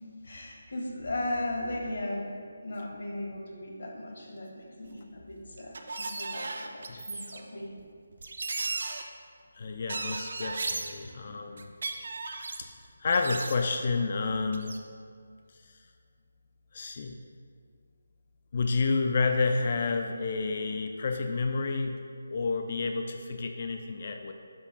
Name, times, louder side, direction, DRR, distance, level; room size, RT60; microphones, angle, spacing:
voice 1, 0.2-2.3 2.6-7.7 10.9-11.0, left 1 dB, 65° left, -1 dB, 1.6 m, -37 dB
sound 1, 4.8-4.9 5.6-7.4 7.8-7.9 8.1-9.0 9.9-10.9 11.6-12.6 13.1-13.9 14.5-14.8, right 3 dB, 60° right, 0.5 m, -35 dB
voice 2, 9.6-11.7 12.6-12.7 13.0-14.7 16.7-17.2 18.5-22.0 22.3-24.3, left 4 dB, 40° left, 5 dB, 0.4 m, -29 dB
12.5 x 4.8 x 2.3 m, 2.2 s
figure-of-eight pair, 170°, 0 cm